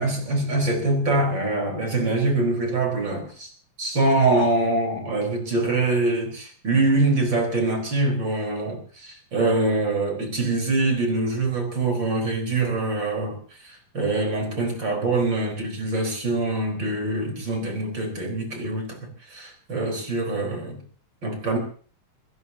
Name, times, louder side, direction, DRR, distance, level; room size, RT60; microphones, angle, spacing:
voice 1, 0.0-3.5 3.8-13.4 13.6-20.8 21.2-21.6, right 2 dB, 30° right, 2 dB, 4.8 m, -24 dB
25.5 x 16.0 x 2.8 m, 0.43 s
omnidirectional pair, 4.2 m